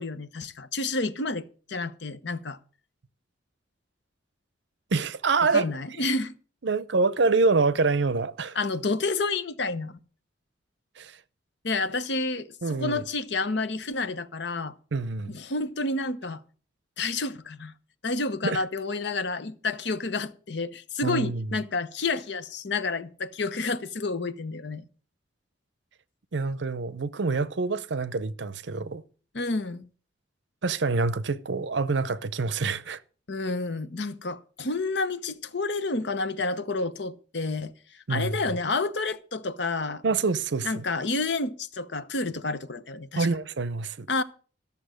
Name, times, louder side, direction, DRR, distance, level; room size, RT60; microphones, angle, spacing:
voice 1, 0.0-2.6 5.5-6.3 8.5-10.0 11.6-14.7 15.3-16.4 17.0-17.7 18.0-24.8 29.3-29.8 33.3-37.7 38.1-40.0 40.6-43.3 44.1-44.2, left 3 dB, 60° left, 0.8 m, -29 dB
voice 2, 4.9-5.7 6.0-6.1 6.6-8.6 11.0-11.2 12.6-13.0 14.9-15.4 18.4-18.6 21.0-21.5 26.3-29.0 30.6-33.0 38.1-38.4 40.0-40.8 43.2-44.1, right 4 dB, 65° right, 0.6 m, -26 dB
13.5 x 6.9 x 6.4 m
head